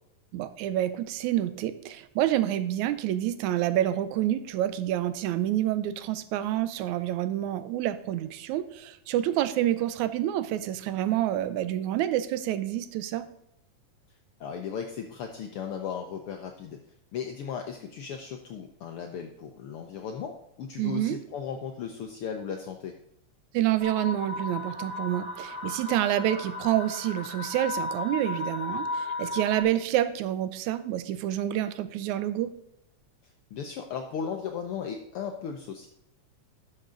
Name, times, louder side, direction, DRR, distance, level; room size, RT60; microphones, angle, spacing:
voice 1, 0.3-13.3 20.8-21.2 23.5-32.5, right 12 dB, 85° right, 13 dB, 2.0 m, -28 dB
voice 2, 14.4-16.8 17.1-22.9 33.5-35.9, left 7 dB, 80° left, 4 dB, 1.3 m, -36 dB
sound 1, 23.8-29.6, left 2 dB, 10° right, 3.6 m, -35 dB
12.0 x 6.6 x 3.8 m, 0.79 s
omnidirectional pair, 3.4 m